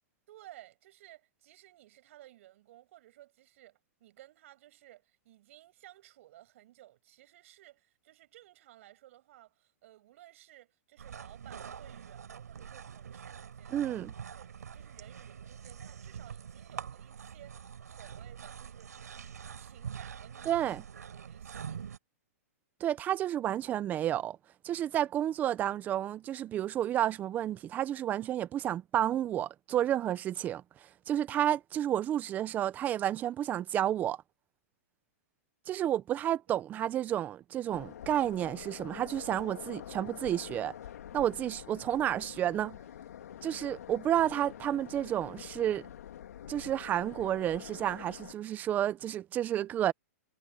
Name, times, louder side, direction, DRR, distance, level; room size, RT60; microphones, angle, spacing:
voice 1, 0.3-14.0 14.3-18.9 19.5-20.6 21.1-21.9, right 15 dB, 55° right, 7.4 m, -57 dB
sound 1, 11.0-22.0, right 7 dB, 90° right, 4.6 m, -45 dB
voice 2, 13.7-14.1 20.5-20.8 22.8-24.4 24.6-30.6 31.1-34.2 35.7-40.7 41.1-42.8 43.4-45.9 46.5-49.9, right 11 dB, 20° right, 0.7 m, -31 dB
sound 2, 37.7-48.3, left 10 dB, 70° left, 2.5 m, -46 dB
hypercardioid pair, 145°, 9 cm